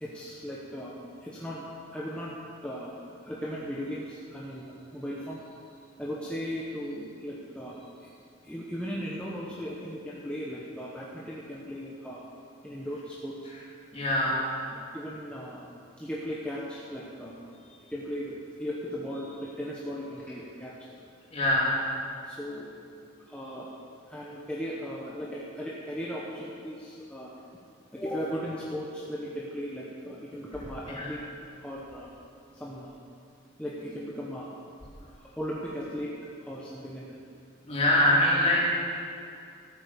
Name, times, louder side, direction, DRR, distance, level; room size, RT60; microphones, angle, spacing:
voice 1, 0.0-2.3 2.6-2.9 3.2-5.4 6.0-8.1 8.4-12.2 12.6-13.5 14.1-14.4 14.7-15.6 16.0-20.7 21.6-21.8 22.2-22.7 23.2-23.7 24.1-27.3 27.9-31.2 31.6-32.1 32.5-33.0 33.6-34.6 35.1-37.2 37.9-38.1, equal, 5° left, -6 dB, 1.1 m, -37 dB
voice 2, 13.9-14.4 21.3-21.7 31.0-31.1 37.7-38.7, left 1 dB, 30° left, -5 dB, 3.1 m, -23 dB
13.5 x 8.9 x 7.0 m, 2.5 s
head